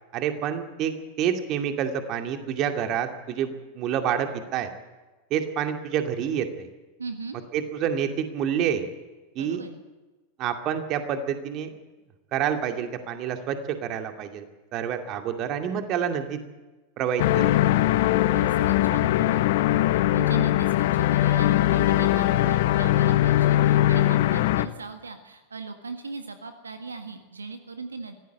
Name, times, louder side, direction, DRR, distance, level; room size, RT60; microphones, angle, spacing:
voice 1, 0.1-4.7 5.3-6.7 7.5-8.8 9.4-9.6 10.4-11.7 12.3-14.5 14.7-16.4 17.0-17.7, right 8 dB, 35° right, 6 dB, 2.4 m, -28 dB
voice 2, 7.0-7.4 9.4-9.8 18.3-28.1, right 4 dB, 75° right, 8 dB, 1.7 m, -39 dB
sound 1, 17.2-24.7, left 14 dB, 50° left, 0.9 m, -21 dB
24.0 x 16.5 x 7.9 m, 1.2 s
figure-of-eight pair, 90°, 0 cm